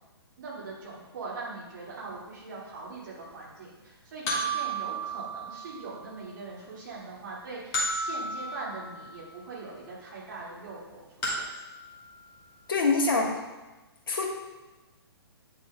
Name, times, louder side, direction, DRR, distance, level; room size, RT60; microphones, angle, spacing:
voice 1, 0.4-11.4, right 3 dB, 50° right, -5 dB, 2.3 m, -41 dB
sound 1, 1.8-1.9 4.3-6.1 7.7-9.4 11.2-12.7, right 2 dB, 20° left, 1.7 m, -33 dB
voice 2, 12.7-13.3 14.1-14.3, left 3 dB, 55° left, 0 dB, 1.4 m, -24 dB
8.9 x 6.1 x 2.3 m, 1.1 s
figure-of-eight pair, 120°, 14 cm